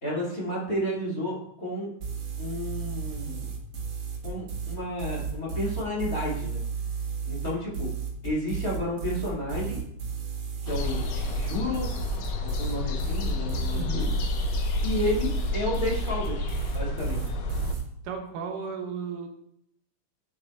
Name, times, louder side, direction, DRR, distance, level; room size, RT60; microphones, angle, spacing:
voice 1, 0.0-1.9 2.4-3.5 4.2-6.6 7.2-8.0 8.2-9.8 10.6-12.1 12.4-14.1 14.8-16.5 16.7-17.3, left 1 dB, 25° left, -7 dB, 3.0 m, -31 dB
sound 1, 2.0-17.8, right 6 dB, 60° right, 2.7 m, -33 dB
sound 2, 10.7-17.7, left 3 dB, 70° left, 1.8 m, -30 dB
voice 2, 13.7-14.2 18.0-19.3, right 6 dB, 85° right, 2 dB, 2.8 m, -34 dB
9.9 x 8.0 x 2.6 m, 0.73 s
omnidirectional pair, 3.6 m